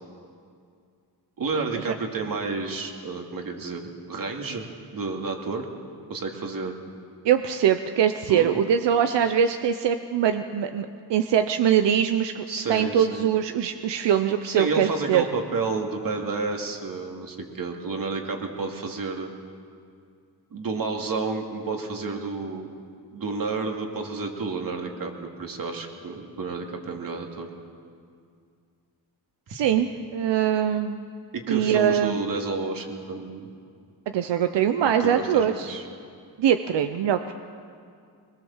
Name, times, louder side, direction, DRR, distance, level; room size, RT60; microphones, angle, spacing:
voice 1, 1.4-3.8 4.1-4.6 4.9-5.7 6.1-6.7 8.3-8.6 12.5-13.2 14.4-19.3 20.5-22.7 23.1-27.5 31.3-33.5 35.0-35.8, right 3 dB, 55° right, 2 dB, 2.6 m, -30 dB
voice 2, 7.2-12.4 12.7-15.2 29.5-31.1 31.5-32.2 34.1-35.7 36.4-37.3, right 9 dB, 90° right, 8 dB, 0.8 m, -22 dB
22.0 x 21.0 x 7.3 m, 2.3 s
cardioid pair, 110°, 41 cm